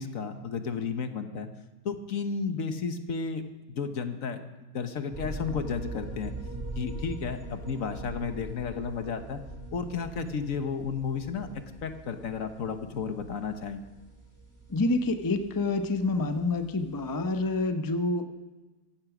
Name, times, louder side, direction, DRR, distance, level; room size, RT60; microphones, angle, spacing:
voice 1, 0.0-1.5 1.8-6.3 6.7-9.4 9.7-13.8, left 5 dB, 65° left, 8 dB, 1.4 m, -33 dB
sound 1, 5.1-17.7, right 2 dB, 10° right, 2.9 m, -42 dB
voice 2, 14.7-18.3, left 2 dB, 20° left, 7 dB, 0.6 m, -27 dB
15.0 x 13.0 x 6.0 m, 1.2 s
omnidirectional pair, 1.6 m